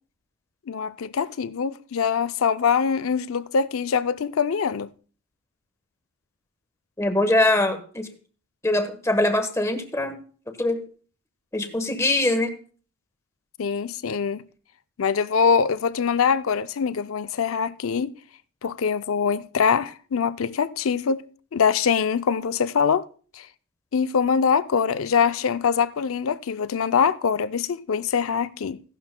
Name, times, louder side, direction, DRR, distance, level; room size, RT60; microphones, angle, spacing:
voice 1, 0.7-4.9 13.6-14.4 15.0-18.1 18.6-23.1 23.4-23.5 23.9-28.8, left 6 dB, 85° left, 0.5 m, -23 dB
voice 2, 7.0-8.1 8.6-10.1 10.5-10.8 11.5-12.5, left 1 dB, 15° left, 1.1 m, -22 dB
16.0 x 11.5 x 2.2 m
head